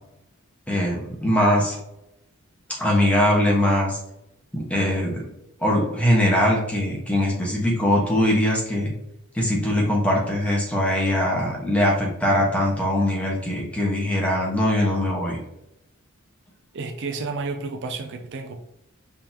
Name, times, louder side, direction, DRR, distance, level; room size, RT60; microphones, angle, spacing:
voice 1, 0.7-1.8 2.8-4.0 4.5-5.2 5.6-8.9 9.3-15.4, left 1 dB, 5° left, -3 dB, 1.3 m, -21 dB
voice 2, 16.7-18.6, right 3 dB, 55° right, 7 dB, 0.4 m, -31 dB
5.2 x 3.6 x 2.9 m, 0.83 s
head